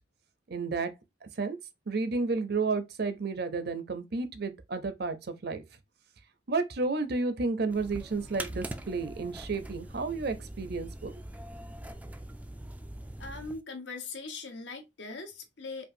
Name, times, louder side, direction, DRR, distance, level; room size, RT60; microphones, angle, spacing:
voice 1, 0.5-0.9 1.2-1.6 1.9-5.6 6.5-11.1, right 3 dB, 55° right, 0.6 m, -31 dB
sound 1, 7.7-13.6, right 1 dB, 10° right, 0.3 m, -42 dB
voice 2, 13.2-15.9, left 3 dB, 65° left, 0.9 m, -40 dB
5.2 x 2.4 x 2.7 m
head